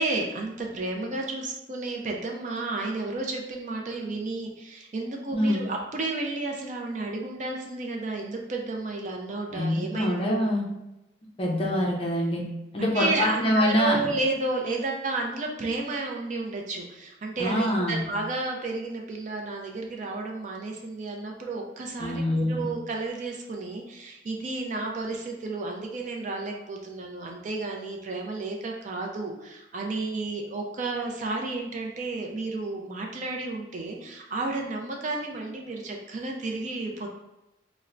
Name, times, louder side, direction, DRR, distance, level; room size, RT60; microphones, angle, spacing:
voice 1, 0.0-10.4 12.8-37.1, right 2 dB, 40° right, 1 dB, 0.4 m, -32 dB
voice 2, 5.3-5.6 9.5-10.7 11.4-12.4 12.7-14.1 17.4-18.1 22.0-22.6, equal, 30° left, -2 dB, 0.5 m, -25 dB
4.2 x 2.0 x 2.5 m, 0.93 s
head